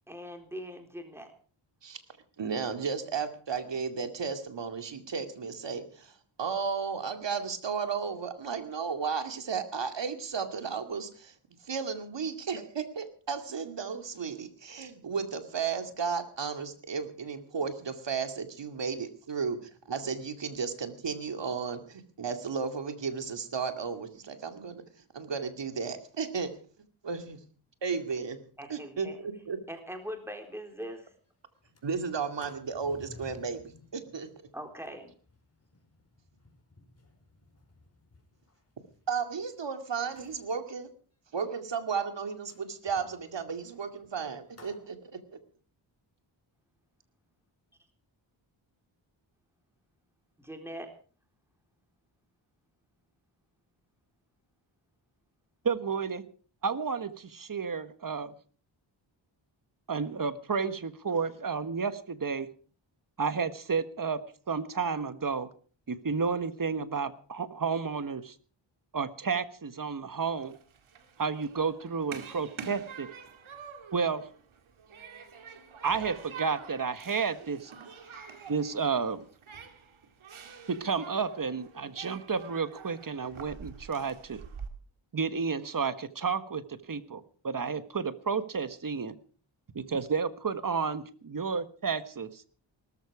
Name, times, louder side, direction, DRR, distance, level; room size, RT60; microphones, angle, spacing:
voice 1, 0.1-1.3 28.6-29.2 29.7-31.1 34.5-35.1 50.4-50.9, equal, 5° right, 5 dB, 3.9 m, -41 dB
voice 2, 2.4-11.3 11.6-24.8 25.1-26.5 27.0-27.4 27.8-28.4 28.7-29.6 31.8-34.3 39.1-40.9 41.3-45.4, right 5 dB, 65° right, 8 dB, 2.4 m, -34 dB
Sliding door, 30.0-30.1 30.4-30.5 30.9-31.2 31.6-39.6 40.0-40.5 42.5-44.9, left 2 dB, 30° left, 4.7 m, -56 dB
voice 3, 55.6-56.2 56.6-58.3 59.9-62.5 63.2-64.2 64.5-65.5 65.9-68.3 68.9-70.5 71.2-73.1 73.9-74.3 75.8-77.7 78.5-79.2 80.7-84.4 85.1-89.1 89.7-92.4, right 5 dB, 45° right, 13 dB, 1.4 m, -31 dB
Human group actions, 70.4-84.7, right 6 dB, 85° right, 2.2 m, -47 dB
18.5 x 14.0 x 4.8 m, 0.42 s
wide cardioid pair, 90°, 47 cm